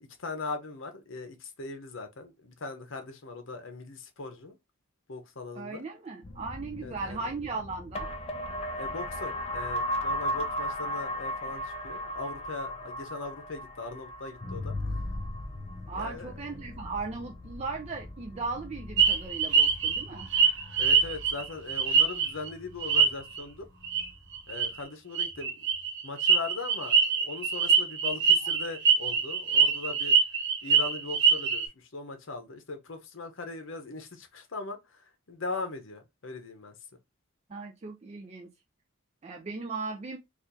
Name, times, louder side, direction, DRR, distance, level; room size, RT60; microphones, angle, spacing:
voice 1, 0.2-4.6 5.1-5.8 6.8-7.3 8.8-15.0 15.9-16.3 20.8-23.7 24.5-25.7 26.0-30.2 30.6-36.7, left 3 dB, 60° left, 0.8 m, -40 dB
voice 2, 5.6-8.1 15.9-20.3 37.5-38.5 39.2-40.2, right 4 dB, 30° right, 0.4 m, -37 dB
sound 1, 6.2-23.5 23.8-24.3, left 1 dB, 30° left, 0.5 m, -37 dB
sound 2, 19.0-22.5 22.8-23.4 23.8-24.1 24.3-24.7 25.1-31.7, right 6 dB, 60° right, 0.7 m, -24 dB
4.2 x 2.4 x 2.6 m
head